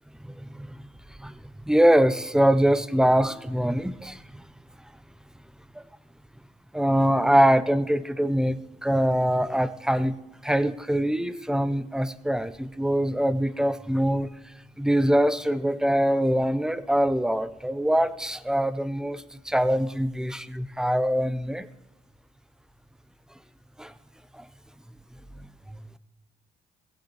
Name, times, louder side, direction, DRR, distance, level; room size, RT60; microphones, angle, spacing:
voice 1, 0.2-0.7 1.2-1.3 1.7-4.4 6.7-10.2 10.4-14.3 14.8-21.7 23.8-23.9 24.4-24.5 25.7-26.0, equal, 5° right, 13 dB, 0.7 m, -23 dB
16.5 x 7.6 x 4.6 m, 0.99 s
supercardioid pair, 70°, 18 cm